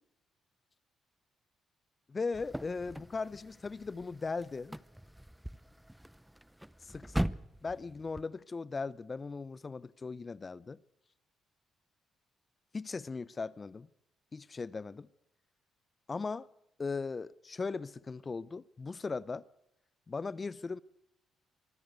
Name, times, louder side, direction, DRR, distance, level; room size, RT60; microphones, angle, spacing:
voice 1, 2.1-4.8 6.8-7.3 7.6-10.8 12.7-13.9 14.3-15.1 16.1-16.5 16.8-19.4 20.1-20.8, left 4 dB, 30° left, 0.7 m, -38 dB
sound 1, 2.3-8.2, right 1 dB, 5° right, 0.8 m, -41 dB
24.0 x 15.0 x 8.2 m
cardioid pair, 90°, 0 cm